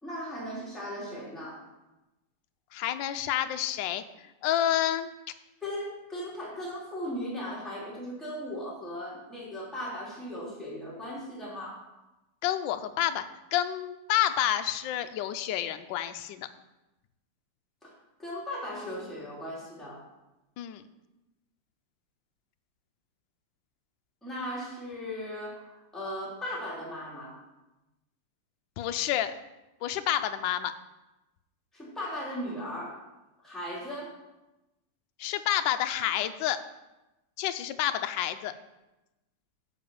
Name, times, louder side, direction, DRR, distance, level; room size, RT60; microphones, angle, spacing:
voice 1, 0.0-1.6 5.6-11.8 17.8-17.9 18.2-20.0 24.2-27.4 31.7-33.0 33.4-34.2, equal, ahead, -6 dB, 2.9 m, -37 dB
voice 2, 2.7-4.0 4.4-5.1 12.4-13.2 13.5-16.5 20.6-20.8 28.8-29.3 29.8-30.7 35.2-36.6 37.4-38.5, left 12 dB, 75° left, 9 dB, 1.2 m, -29 dB
10.0 x 4.8 x 7.0 m, 1.0 s
omnidirectional pair, 2.4 m